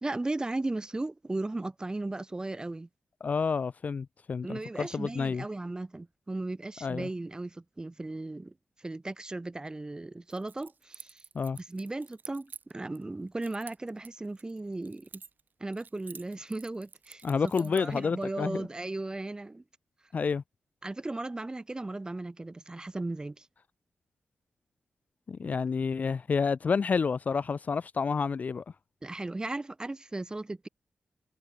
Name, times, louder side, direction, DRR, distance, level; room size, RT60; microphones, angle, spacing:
voice 1, 0.0-2.9 4.4-8.5 8.8-11.2 11.5-15.1 15.6-17.2 17.6-19.6 20.8-23.5 25.4-25.6 29.0-30.7, right 2 dB, 20° right, 1.4 m, -36 dB
voice 2, 3.2-5.4 6.8-7.1 11.3-11.6 17.2-18.7 20.1-20.4 25.3-28.6, left 5 dB, 45° left, 0.3 m, -29 dB
Keys jangling, 10.3-13.0 13.4-15.5 15.7-18.0, right 5 dB, 60° right, 4.1 m, -49 dB
cardioid pair, 85°, 4 cm